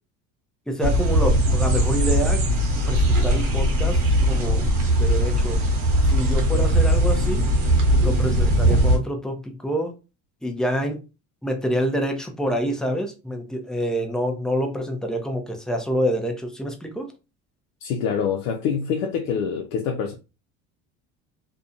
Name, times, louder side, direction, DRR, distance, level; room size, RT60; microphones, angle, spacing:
voice 1, 0.7-2.4 2.9-4.6 5.0-5.6 6.1-7.4 8.0-9.9 10.4-11.0 11.4-17.1, equal, ahead, 0.5 m, -27 dB
sound 1, 0.8-9.0, right 1 dB, 85° right, 0.9 m, -20 dB
voice 2, 17.8-20.1, left 6 dB, 75° left, 0.5 m, -25 dB
2.6 x 2.2 x 2.5 m
hypercardioid pair, 80°, 39 cm